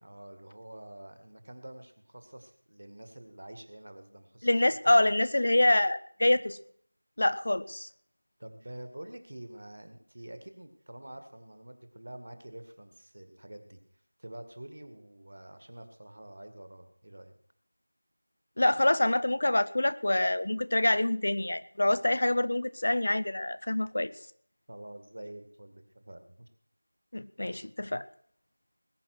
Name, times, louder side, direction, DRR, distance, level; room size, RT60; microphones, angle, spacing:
voice 1, 0.0-5.1 8.4-13.8 14.2-17.4 24.7-26.5, right 1 dB, 40° right, 8 dB, 1.9 m, -47 dB
voice 2, 4.4-6.6 7.2-7.9 18.6-24.1 27.1-28.1, left 1 dB, 35° left, 16 dB, 0.6 m, -26 dB
20.0 x 9.1 x 6.3 m, 0.62 s
figure-of-eight pair, 180°, 0 cm